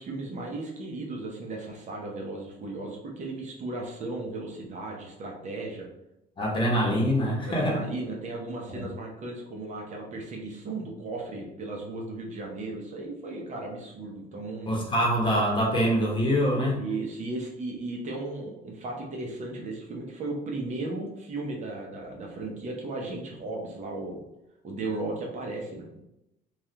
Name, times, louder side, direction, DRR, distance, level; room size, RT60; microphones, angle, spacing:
voice 1, 0.0-5.9 6.5-6.6 7.5-14.7 16.7-24.2 24.6-26.0, right 2 dB, 45° right, 0 dB, 0.8 m, -36 dB
voice 2, 6.4-7.8 8.7-8.8 14.7-16.8, equal, 30° left, -2 dB, 0.9 m, -24 dB
3.1 x 2.4 x 2.8 m, 0.86 s
cardioid pair, 110°, 17 cm